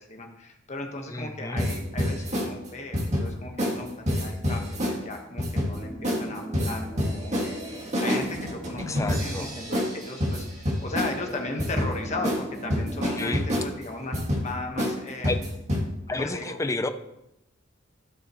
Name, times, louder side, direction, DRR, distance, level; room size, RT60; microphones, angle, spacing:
voice 1, 0.1-15.4 16.1-16.6, left 2 dB, 35° left, 2 dB, 1.3 m, -36 dB
voice 2, 1.1-1.6 8.9-9.5 13.2-13.4 15.2-15.4 16.1-16.9, left 2 dB, 15° left, 9 dB, 0.5 m, -30 dB
sound 1, 1.6-2.5 2.9-3.3 3.6-3.8 4.1-5.0 5.4-5.8 6.0-6.2 6.5-11.2 11.6-11.9 12.2-12.4 12.7-13.7 14.1-14.4 14.8-14.9 15.2-15.8, left 1 dB, 35° right, 2.0 m, -27 dB
sound 2, 5.6-10.0 10.4-10.5 11.2-13.3, equal, 15° right, 1.5 m, -40 dB
14.0 x 6.2 x 3.1 m, 0.89 s
head